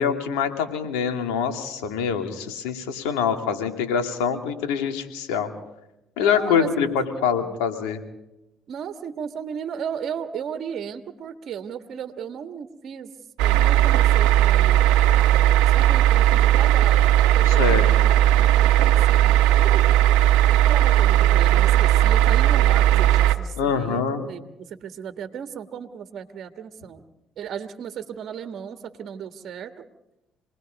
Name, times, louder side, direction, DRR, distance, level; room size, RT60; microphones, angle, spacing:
voice 1, 0.0-5.5 6.2-8.0 17.4-17.8 23.6-24.2, left 7 dB, 85° left, 6 dB, 2.6 m, -24 dB
voice 2, 6.2-7.6 8.7-13.1 13.4-17.1 17.3-19.8 20.5-27.0 27.4-29.8, right 8 dB, 60° right, 7 dB, 1.6 m, -35 dB
sound 1, 13.4-23.4, right 13 dB, 85° right, 1.1 m, -17 dB
27.0 x 20.0 x 5.3 m, 0.90 s
supercardioid pair, 60°, 0 cm